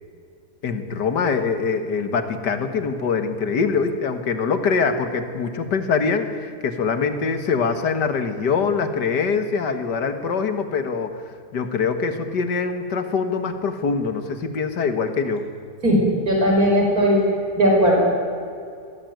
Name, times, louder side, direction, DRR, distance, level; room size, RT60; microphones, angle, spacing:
voice 1, 0.6-11.2 11.5-15.4, left 5 dB, 80° left, 9 dB, 2.3 m, -23 dB
voice 2, 15.8-17.2 17.6-18.0, equal, 55° right, -1 dB, 5.6 m, -17 dB
22.0 x 16.5 x 9.4 m, 2.4 s
omnidirectional pair, 1.8 m